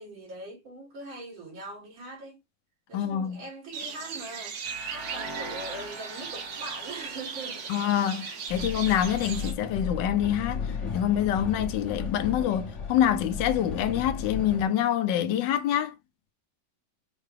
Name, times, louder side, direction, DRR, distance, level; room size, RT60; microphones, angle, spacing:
voice 1, 0.0-2.4 2.9-4.6 4.8-7.7, right 2 dB, 85° right, 3.2 m, -41 dB
voice 2, 2.9-3.4 7.7-10.7 10.9-16.0, left 10 dB, 75° left, 1.2 m, -26 dB
sound 1, 3.7-9.5, right 6 dB, 70° right, 1.5 m, -38 dB
sound 2, 4.6-9.5, right 2 dB, 20° right, 0.6 m, -43 dB
Train, 8.5-14.6, left 5 dB, 45° left, 1.2 m, -35 dB
5.5 x 2.2 x 3.2 m
omnidirectional pair, 2.1 m